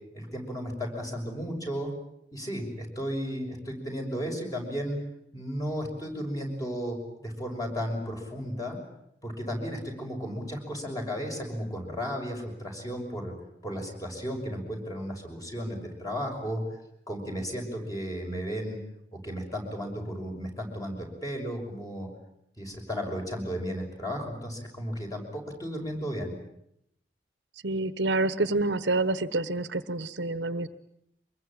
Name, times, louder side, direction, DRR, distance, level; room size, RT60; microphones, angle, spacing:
voice 1, 0.1-1.9 2.3-5.0 5.3-7.0 7.2-8.8 9.2-13.3 13.6-16.6 17.1-18.8 19.1-22.1 22.6-26.3, equal, 20° left, 2 dB, 6.3 m, -34 dB
voice 2, 27.6-30.7, right 2 dB, 75° right, 14 dB, 1.1 m, -27 dB
25.0 x 22.0 x 8.9 m, 0.76 s
head